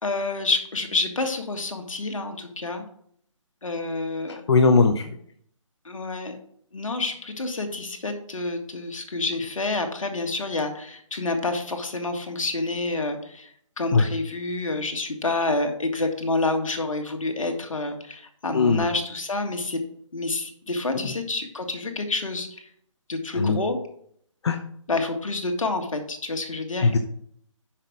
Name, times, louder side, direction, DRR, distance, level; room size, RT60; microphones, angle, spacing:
voice 1, 0.0-2.8 3.6-4.4 5.9-6.3 6.7-19.8 20.1-22.6 23.1-23.8 24.9-26.9, left 3 dB, 75° left, 5 dB, 1.8 m, -28 dB
voice 2, 4.5-5.1 13.9-14.0 18.5-18.8 23.3-23.6 24.4-24.6 26.8-27.0, left 4 dB, 55° left, 6 dB, 0.8 m, -18 dB
7.6 x 6.0 x 4.7 m, 0.65 s
figure-of-eight pair, 145°, 17 cm